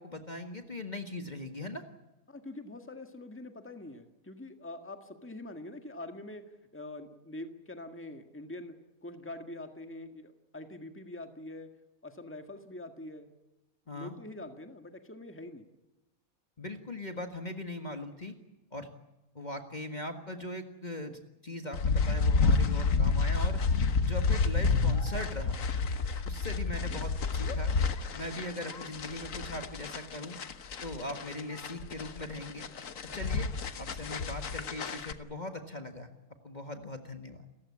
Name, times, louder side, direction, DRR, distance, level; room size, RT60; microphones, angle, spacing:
voice 1, 0.0-1.8 13.9-14.1 16.6-18.3 18.7-18.9 19.4-23.6 24.0-25.6 26.3-27.7 28.2-30.4 30.8-32.6 33.1-33.5 33.8-36.1 36.4-37.4, left 1 dB, 30° left, 5 dB, 1.8 m, -40 dB
voice 2, 2.3-8.8 9.0-11.7 12.0-13.3 13.9-15.7, left 1 dB, 10° left, 6 dB, 1.8 m, -44 dB
sound 1, 21.7-35.1, left 4 dB, 65° left, 1.6 m, -30 dB
29.5 x 15.5 x 8.5 m, 1.0 s
omnidirectional pair, 1.5 m